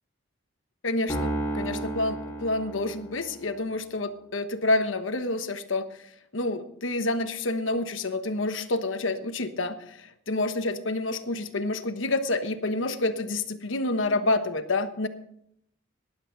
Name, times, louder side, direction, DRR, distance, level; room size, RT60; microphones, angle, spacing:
voice 1, 0.8-15.1, left 2 dB, 80° left, 9 dB, 1.2 m, -28 dB
Piano, 1.1-3.5, right 1 dB, 15° left, 4.1 m, -32 dB
18.5 x 11.0 x 4.1 m, 0.73 s
head